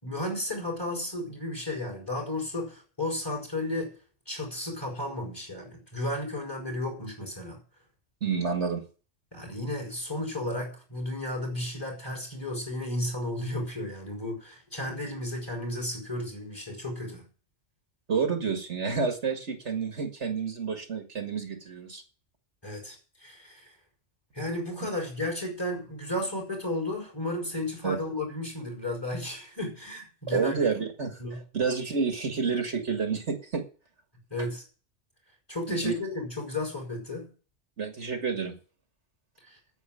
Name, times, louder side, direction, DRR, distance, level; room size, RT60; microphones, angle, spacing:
voice 1, 0.0-3.9 4.3-7.6 9.3-17.3 22.6-23.7 24.3-30.6 31.2-31.4 34.3-34.6 35.5-37.3 39.4-39.6, left 1 dB, 20° left, 2 dB, 4.8 m, -33 dB
voice 2, 8.2-8.8 18.1-22.0 27.8-28.0 30.3-31.2 31.5-33.6 35.7-35.9 37.8-38.5, right 5 dB, 60° right, 4 dB, 2.1 m, -29 dB
9.5 x 8.0 x 8.9 m, 0.38 s
omnidirectional pair, 1.3 m